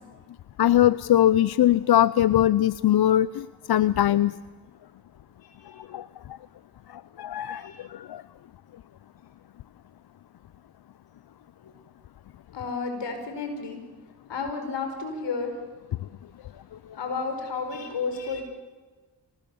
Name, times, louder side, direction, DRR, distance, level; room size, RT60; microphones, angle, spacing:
voice 1, 0.6-4.4 5.8-6.1 6.9-8.2, left 12 dB, 65° left, 17 dB, 0.6 m, -21 dB
voice 2, 5.4-5.8 7.5-7.9 11.6-11.7 12.5-13.8 14.3-15.5 17.0-18.4, left 4 dB, 80° left, 5 dB, 5.0 m, -32 dB
26.0 x 19.5 x 7.1 m, 1.3 s
cardioid pair, 55°, 42 cm